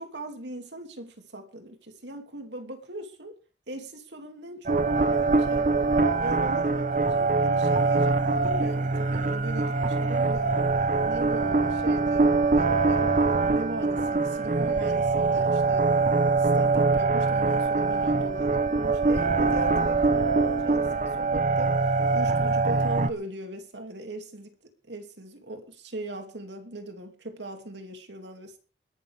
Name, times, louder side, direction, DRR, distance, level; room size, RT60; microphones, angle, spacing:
voice 1, 0.0-3.3 3.7-5.7 6.2-10.5 11.0-15.9 16.4-21.7 22.1-24.5 24.9-28.6, right 1 dB, 85° right, 2.8 m, -39 dB
sound 1, 4.7-23.1, right 3 dB, 45° right, 0.9 m, -23 dB
21.0 x 12.0 x 3.6 m
head